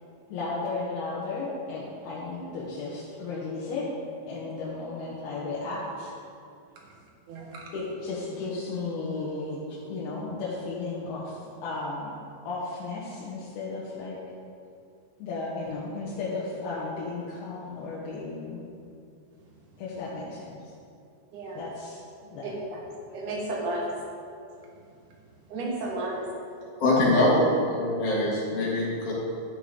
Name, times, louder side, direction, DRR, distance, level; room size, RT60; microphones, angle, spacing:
voice 1, 0.3-3.9 4.3-6.1 7.7-11.3 11.6-12.1 12.5-14.2 15.2-18.6 19.8-20.5 21.6-22.5, left 3 dB, 80° left, -7 dB, 3.2 m, -34 dB
voice 2, 22.4-22.8 23.1-23.9 25.5-26.3, right 2 dB, 60° right, -2 dB, 2.9 m, -32 dB
voice 3, 26.8-29.1, left 1 dB, 55° left, -6 dB, 3.4 m, -23 dB
12.5 x 8.5 x 3.8 m, 2.5 s
omnidirectional pair, 4.4 m